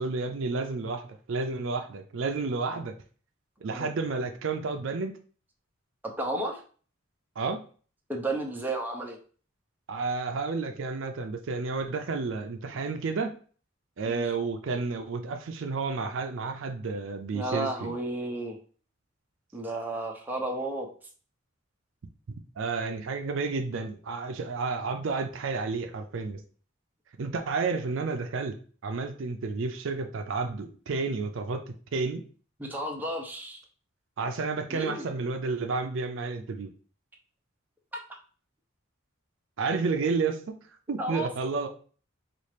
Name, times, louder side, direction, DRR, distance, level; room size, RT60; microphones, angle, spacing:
voice 1, 0.0-2.9 3.6-5.1 7.4-7.6 9.9-13.3 14.0-17.9 22.6-26.4 27.2-28.6 28.8-31.6 31.9-32.2 34.2-36.7 39.6-40.5 40.9-41.7, right 4 dB, 65° right, 6 dB, 0.4 m, -31 dB
voice 2, 6.0-6.6 8.1-9.2 14.0-14.2 17.3-18.6 19.5-20.9 32.6-33.6 34.7-35.1 41.0-41.3, right 1 dB, 10° right, 0 dB, 0.6 m, -32 dB
4.2 x 2.4 x 3.2 m, 0.41 s
head